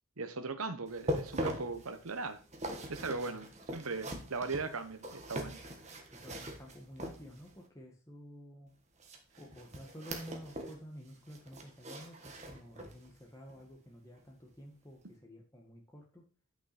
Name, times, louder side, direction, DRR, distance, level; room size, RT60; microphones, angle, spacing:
voice 1, 0.2-2.4 2.9-5.6, right 3 dB, 80° right, 1.0 m, -38 dB
sound 1, 0.9-7.6 9.0-10.8 11.1-13.1 13.5-13.7 14.2-14.3, equal, 30° right, 1.4 m, -42 dB
voice 2, 6.1-8.7 9.4-16.2, equal, 15° left, 1.6 m, -51 dB
9.3 x 6.0 x 4.2 m
head